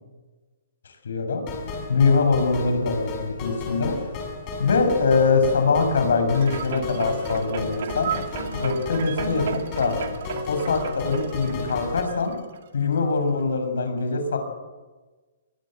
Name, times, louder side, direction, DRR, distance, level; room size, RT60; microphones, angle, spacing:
voice 1, 1.0-1.4 1.9-4.0 4.6-8.1 8.5-9.5 9.8-9.9 10.5-12.3 12.7-14.4, left 4 dB, 85° left, 7 dB, 7.2 m, -22 dB
sound 1, 1.5-12.0, left 3 dB, 20° left, 6.0 m, -34 dB
sound 2, 6.3-12.9 13.4-13.5, right 7 dB, 50° right, 2.4 m, -34 dB
23.0 x 21.0 x 8.0 m, 1.3 s
hypercardioid pair, 175°, 0 cm